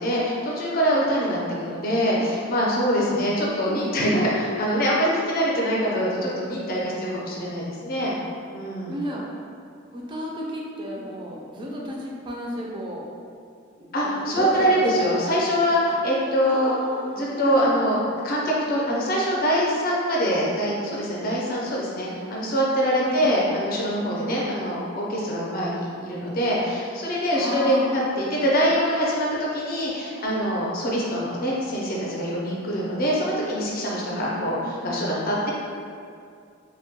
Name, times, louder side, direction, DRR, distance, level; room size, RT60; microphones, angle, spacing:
voice 1, 0.0-8.1 8.5-8.9 13.9-16.7 17.1-18.0 18.2-35.5, equal, 50° left, -4 dB, 0.5 m, -24 dB
voice 2, 3.6-4.5 8.9-9.3 9.9-13.1 13.8-15.7 16.4-18.2 23.0-23.3 24.1-24.4 27.3-28.0 34.0-35.1, equal, 25° right, -3 dB, 0.3 m, -34 dB
2.1 x 2.1 x 2.8 m, 2.3 s
head